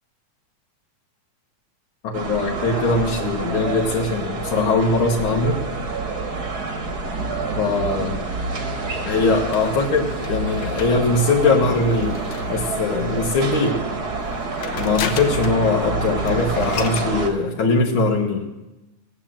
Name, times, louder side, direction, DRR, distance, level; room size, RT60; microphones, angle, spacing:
voice 1, 2.0-5.6 7.6-8.1 9.0-12.2 12.5-13.8 14.8-18.4, left 3 dB, 55° left, -1 dB, 1.7 m, -21 dB
sound 1, 2.1-17.3, right 3 dB, 40° right, 1.8 m, -27 dB
sound 2, 9.5-13.2 14.1-15.7 16.0-16.1 16.3-17.1, left 8 dB, 70° left, 1.2 m, -34 dB
18.0 x 8.9 x 7.4 m, 1.0 s
omnidirectional pair, 3.3 m